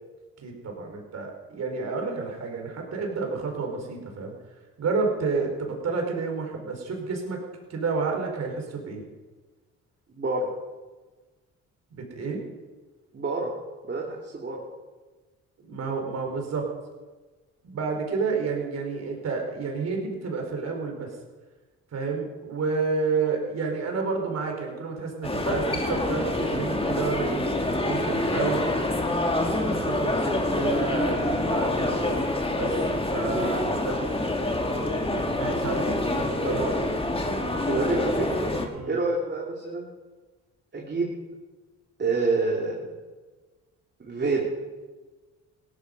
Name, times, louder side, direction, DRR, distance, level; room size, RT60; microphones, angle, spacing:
voice 1, 0.4-4.3 4.8-7.4 7.7-9.0 11.9-12.4 15.6-16.7 17.6-21.1 21.9-27.4 27.9-28.6 29.7-32.0 32.5-32.8 33.1-34.0 35.1-36.8 37.9-38.1 38.7-38.9, right 4 dB, 60° right, 2 dB, 4.5 m, -30 dB
voice 2, 10.1-10.5 13.1-13.5 13.9-14.6 37.7-38.0 38.9-39.9 40.7-41.1 42.0-42.9 44.0-44.4, right 3 dB, 35° right, -2 dB, 2.9 m, -27 dB
sound 1, 25.2-38.7, left 1 dB, 20° left, 2.1 m, -26 dB
17.0 x 13.0 x 5.4 m, 1.3 s
cardioid pair, 90°, 30 cm